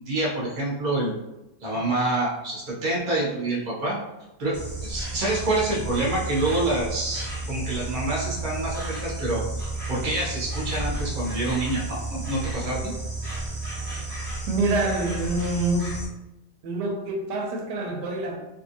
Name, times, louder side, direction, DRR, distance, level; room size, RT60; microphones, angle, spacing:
voice 1, 0.1-1.1 1.6-4.0 4.4-9.4 9.9-12.9, right 2 dB, 35° right, -5 dB, 0.8 m, -27 dB
Insect, 4.5-16.1, right 2 dB, 10° left, 0.8 m, -32 dB
voice 2, 14.5-16.1 16.6-18.3, right 2 dB, 85° right, 1 dB, 1.2 m, -26 dB
2.9 x 2.6 x 2.7 m, 0.98 s
omnidirectional pair, 1.8 m